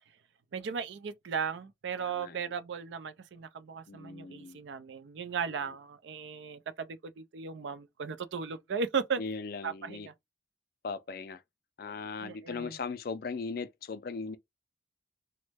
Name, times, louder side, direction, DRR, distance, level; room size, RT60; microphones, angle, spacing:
voice 1, 0.5-9.2 9.6-10.1 12.2-12.7, right 6 dB, 85° right, 0.4 m, -36 dB
voice 2, 2.0-2.5 3.9-4.6 9.2-10.1 10.8-11.4 11.8-14.4, left 4 dB, 55° left, 0.4 m, -38 dB
3.0 x 2.1 x 3.3 m
head